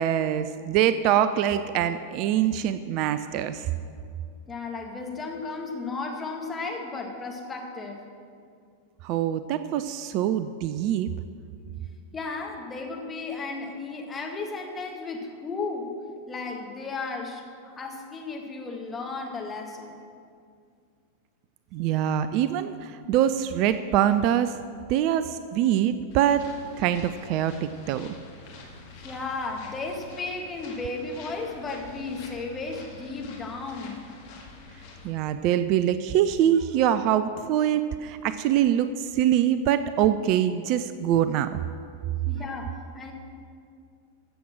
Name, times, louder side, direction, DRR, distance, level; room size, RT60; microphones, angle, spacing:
voice 1, 0.0-3.7 9.0-11.1 21.7-24.6 24.9-26.4 26.8-28.1 35.0-41.6, right 10 dB, 40° right, 12 dB, 0.4 m, -24 dB
voice 2, 4.5-8.0 12.1-15.9 16.3-20.0 29.0-34.0 42.3-43.1, left 3 dB, 15° left, 1 dB, 2.0 m, -34 dB
sound 1, 26.1-35.1, left 3 dB, 50° left, 2.3 m, -46 dB
15.0 x 7.6 x 6.1 m, 2.3 s
figure-of-eight pair, 90°, 0 cm